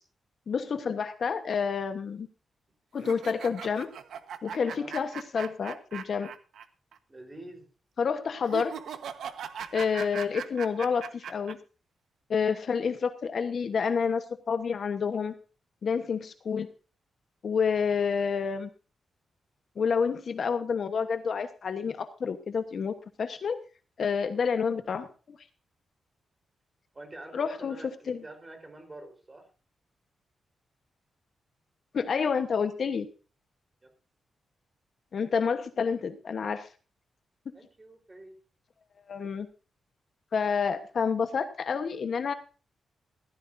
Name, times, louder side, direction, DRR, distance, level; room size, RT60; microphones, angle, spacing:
voice 1, 0.5-2.3 2.9-3.9 4.4-6.3 8.0-8.7 9.7-11.6 12.3-15.3 15.8-16.7 17.4-18.7 19.8-23.6 24.0-25.4 27.3-27.8 28.1-28.2 31.9-33.1 35.1-36.7 39.1-39.5 40.3-42.3, left 6 dB, 50° left, 9 dB, 1.1 m, -29 dB
sound 1, 3.0-6.6 6.9-7.0 8.4-11.5, right 8 dB, 80° right, 1.2 m, -39 dB
voice 2, 7.1-7.7 26.9-29.5 33.8-33.9 37.5-38.4, right 2 dB, 20° right, 5 dB, 4.0 m, -46 dB
16.0 x 14.5 x 2.7 m, 0.35 s
wide cardioid pair, 150°, 0 cm